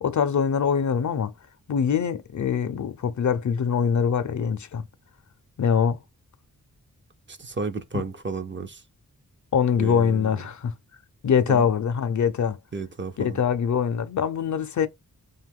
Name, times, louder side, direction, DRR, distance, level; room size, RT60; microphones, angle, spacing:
voice 1, 0.0-1.3 1.7-4.8 5.6-6.0 9.5-10.7 11.2-12.6 13.2-14.9, left 7 dB, 55° left, 0.5 m, -23 dB
voice 2, 7.3-8.8 9.8-10.3 11.5-11.7 12.7-13.4, right 4 dB, 35° right, 0.5 m, -33 dB
2.6 x 2.3 x 3.4 m
wide cardioid pair, 75°, 35 cm